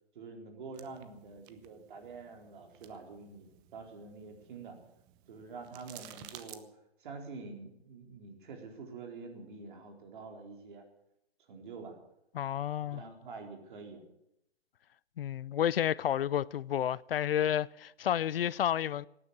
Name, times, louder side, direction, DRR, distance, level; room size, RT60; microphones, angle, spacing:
voice 1, 0.1-4.8 5.3-6.7 7.0-10.8 11.5-12.0 12.8-14.0, right 4 dB, 50° right, 4.1 m, -47 dB
sound 1, 0.7-6.6, right 12 dB, 15° right, 0.5 m, -55 dB
voice 2, 12.3-13.0 15.2-19.1, left 10 dB, 65° left, 0.5 m, -30 dB
17.0 x 9.7 x 8.7 m
hypercardioid pair, 145°, 31 cm